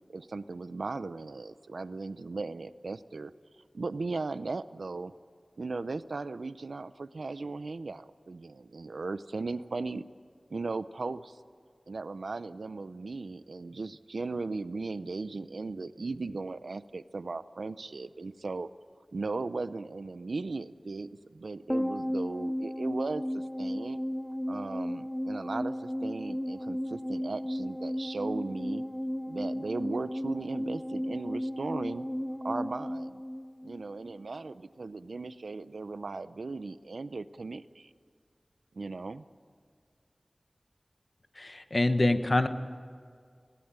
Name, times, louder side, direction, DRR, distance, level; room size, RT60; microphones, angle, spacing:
voice 1, 0.1-3.3 3.7-5.1 5.6-10.0 10.5-11.4 11.9-18.7 19.1-24.0 24.5-28.8 29.3-32.1 32.4-33.2 33.6-37.9 38.7-39.2, right 3 dB, 90° right, 14 dB, 0.6 m, -37 dB
sound 1, 21.7-34.2 34.5-34.6, equal, 5° left, 0.6 m, -34 dB
voice 2, 41.4-42.5, left 2 dB, 45° left, 9 dB, 1.2 m, -25 dB
20.5 x 17.0 x 8.9 m, 2.1 s
wide cardioid pair, 55°, 0 cm